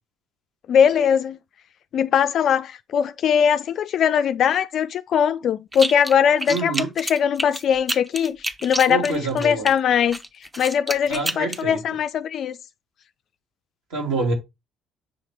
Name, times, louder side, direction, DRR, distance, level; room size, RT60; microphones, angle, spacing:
voice 1, 0.7-1.4 1.9-10.2 10.6-12.6, left 8 dB, 50° left, 0.3 m, -21 dB
sound 1, 5.7-6.1 6.4-9.7 10.1-11.6, right 1 dB, 10° right, 0.7 m, -29 dB
voice 2, 6.5-6.9 8.9-9.7 11.1-11.8 13.9-14.3, right 3 dB, 70° right, 2.0 m, -26 dB
6.3 x 3.3 x 4.6 m
figure-of-eight pair, 50°, 0 cm